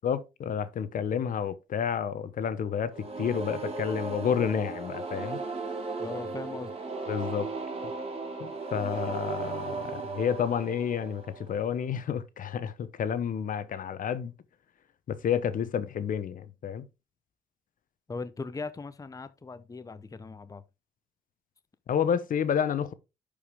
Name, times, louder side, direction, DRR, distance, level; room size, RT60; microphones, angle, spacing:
voice 1, 0.0-5.4 7.1-7.5 8.4-14.3 15.1-16.9 21.9-22.9, left 8 dB, 60° left, 1.0 m, -30 dB
sound 1, 2.9-11.8, right 3 dB, 40° right, 3.2 m, -36 dB
voice 2, 6.0-6.7 18.1-20.6, left 4 dB, 20° left, 0.8 m, -39 dB
11.0 x 5.1 x 3.5 m
supercardioid pair, 65°, 16 cm